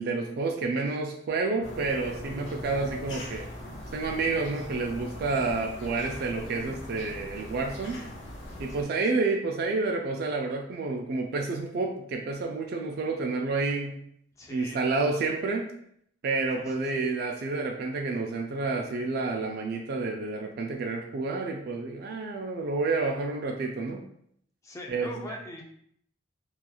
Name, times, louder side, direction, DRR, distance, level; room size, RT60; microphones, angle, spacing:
voice 1, 0.0-3.5 3.9-8.0 8.6-14.0 14.5-15.7 16.2-24.0 24.9-25.1, right 3 dB, 55° right, 2 dB, 0.3 m, -29 dB
sound 1, 1.6-8.8, left 1 dB, 80° left, 0.6 m, -41 dB
voice 2, 14.4-14.8 16.6-17.0 24.6-25.6, left 1 dB, 15° left, 0 dB, 0.4 m, -42 dB
2.9 x 2.4 x 2.3 m, 0.68 s
head